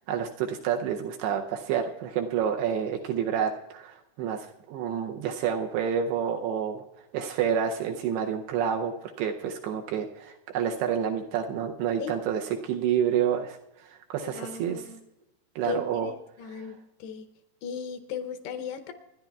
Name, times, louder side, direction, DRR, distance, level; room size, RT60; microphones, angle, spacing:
voice 1, 0.1-6.8 7.1-8.9 9.2-13.6 13.9-14.9 15.6-16.1 16.4-16.7, right 8 dB, 80° right, 3 dB, 2.5 m, -29 dB
voice 2, 14.2-15.0 15.6-16.8 17.0-17.3 17.6-18.9, left 7 dB, 75° left, 8 dB, 2.7 m, -36 dB
28.0 x 10.5 x 2.3 m, 0.91 s
omnidirectional pair, 5.1 m